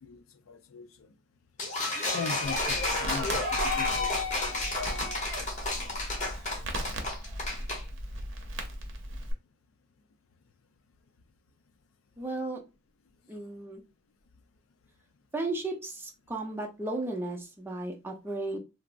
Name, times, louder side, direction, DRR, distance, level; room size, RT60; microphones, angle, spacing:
voice 1, 0.0-0.9 2.1-5.1 5.8-6.0, left 5 dB, 85° left, 0.4 m, -40 dB
sound 1, 1.6-7.8, left 2 dB, 40° left, 1.0 m, -31 dB
Crackle, 2.4-9.3, right 1 dB, 65° right, 0.7 m, -38 dB
voice 2, 12.2-12.6 13.3-13.8 15.3-18.6, right 2 dB, 10° right, 0.6 m, -34 dB
3.4 x 2.0 x 2.5 m
head